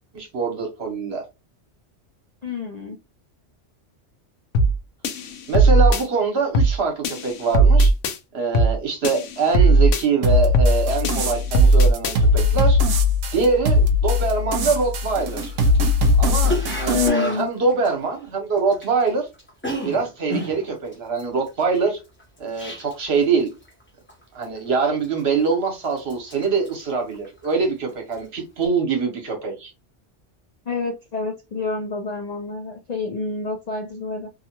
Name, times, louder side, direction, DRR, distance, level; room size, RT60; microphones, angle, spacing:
voice 1, 0.1-1.2 5.5-7.9 8.3-12.8 13.3-15.4 16.2-19.3 19.8-22.0 22.4-23.5 24.3-29.7, right 4 dB, 60° right, 1.1 m, -23 dB
voice 2, 2.4-3.0 16.9-17.5 30.7-34.3, left 4 dB, 55° left, 0.4 m, -28 dB
sound 1, 4.5-4.8 5.0-6.0 6.5-6.8 7.0-8.2 8.5-8.8 9.0-10.0 10.5-10.8 11.0-12.2, right 3 dB, 85° left, 0.9 m, -17 dB
sound 2, 10.2-17.1, left 3 dB, 80° right, 0.9 m, -20 dB
Cough, 14.2-14.3 14.6-19.1 19.3-23.2 23.5-23.8 24.1-24.6 25.0-25.6 25.9-27.6 27.9-28.2, equal, 10° left, 0.8 m, -32 dB
2.8 x 2.2 x 2.8 m
omnidirectional pair, 1.2 m